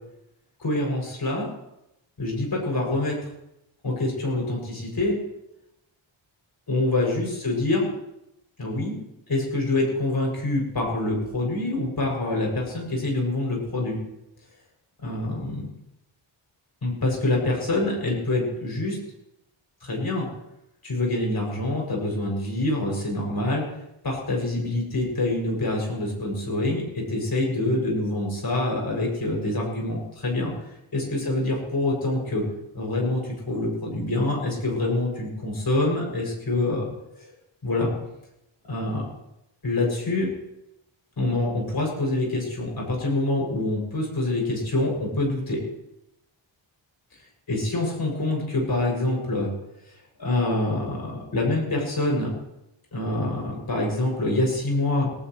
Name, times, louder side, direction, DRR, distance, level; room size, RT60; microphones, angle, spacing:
voice 1, 0.6-1.5 2.2-3.2 3.8-5.2 6.7-7.9 8.6-9.0 9.3-14.0 15.0-15.7 16.8-19.0 19.8-20.3 20.8-23.6 24.0-30.5 30.9-32.4 32.7-36.9 37.2-37.3 37.6-37.9 38.7-39.1 39.6-40.3 41.2-45.6 47.5-49.5 50.2-52.3 52.9-55.1, left 2 dB, 50° left, -1 dB, 6.8 m, -26 dB
21.0 x 18.0 x 3.2 m, 0.86 s
wide cardioid pair, 155°, 48 cm